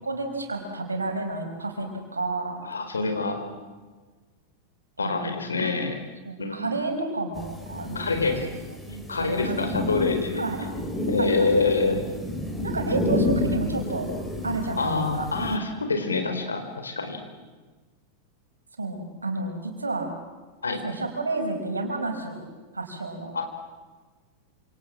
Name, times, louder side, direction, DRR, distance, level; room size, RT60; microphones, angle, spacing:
voice 1, 0.0-2.6 5.0-5.7 6.2-8.1 8.9-9.6 10.3-10.9 11.2-11.7 12.6-14.1 14.4-15.3 18.8-20.1 20.8-22.5 22.7-23.3, right 3 dB, 80° right, 4 dB, 5.1 m, -31 dB
voice 2, 2.6-3.5 5.0-5.9 6.4-6.8 7.9-8.4 9.1-10.4 11.1-12.0 14.8-17.2 20.6-20.8 23.3-23.7, left 3 dB, 75° left, 6 dB, 4.5 m, -26 dB
sound 1, 7.3-15.6, left 1 dB, 5° left, 4.2 m, -30 dB
27.5 x 27.0 x 7.7 m, 1.3 s
figure-of-eight pair, 90°, 0 cm